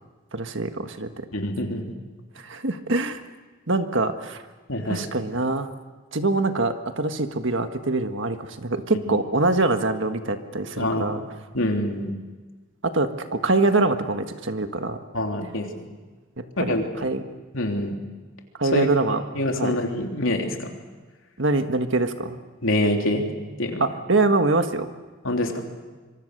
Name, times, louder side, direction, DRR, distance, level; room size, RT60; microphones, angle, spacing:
voice 1, 0.3-1.3 2.4-3.2 3.7-4.4 4.9-5.7 6.1-11.2 12.8-15.0 16.4-17.2 18.6-19.2 19.6-19.8 21.4-22.4 23.8-24.9, right 2 dB, 60° right, 7 dB, 1.6 m, -24 dB
voice 2, 1.3-1.9 4.7-5.0 9.1-9.2 10.8-11.2 11.5-12.1 15.1-15.9 16.6-17.1 17.5-18.0 18.7-18.9 19.3-20.7 22.6-23.3 23.6-23.9 25.2-25.6, left 1 dB, 70° left, 2 dB, 3.3 m, -25 dB
25.5 x 24.0 x 6.7 m, 1.3 s
head